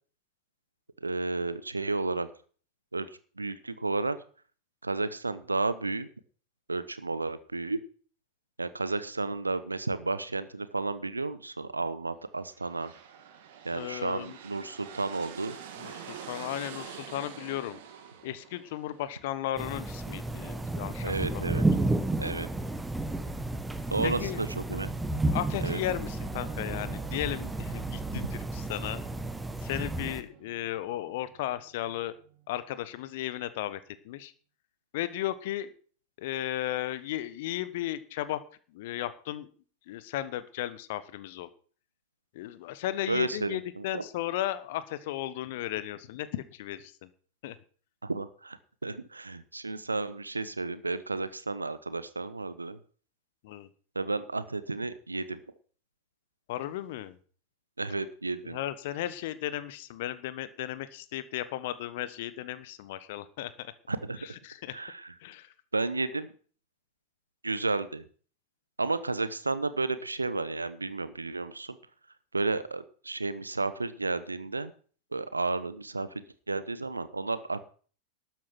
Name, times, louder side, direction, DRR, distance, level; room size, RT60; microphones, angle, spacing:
voice 1, 1.0-2.3 2.9-3.1 3.4-4.2 4.8-6.1 6.7-7.8 8.6-12.9 13.6-15.6 21.0-21.6 22.2-22.5 23.9-24.9 25.6-25.8 28.2-28.3 43.1-44.0 48.0-48.6 48.8-52.8 53.9-55.4 57.8-58.6 63.9-64.2 64.7-65.1 65.7-66.3 67.4-68.0 68.8-71.8 72.3-74.7 75.1-77.6, right 3 dB, 80° right, 14 dB, 1.0 m, -32 dB
sound 1, 12.4-20.1, right 8 dB, 55° right, 2.3 m, -46 dB
voice 2, 13.7-14.4 15.8-17.8 18.2-21.6 24.0-24.4 25.3-29.0 29.6-32.1 32.5-34.3 34.9-35.7 36.2-38.4 38.7-39.5 39.9-41.5 42.3-47.1 47.4-47.6 53.4-53.7 56.5-57.2 58.4-63.7 64.4-64.7 65.2-65.5, left 13 dB, 50° left, 15 dB, 1.2 m, -35 dB
sound 2, 19.6-30.2, right 2 dB, 5° right, 1.4 m, -32 dB
Singing / Musical instrument, 24.2-33.3, right 11 dB, 40° right, 2.8 m, -54 dB
12.5 x 9.3 x 6.0 m, 0.43 s
figure-of-eight pair, 90°, 0 cm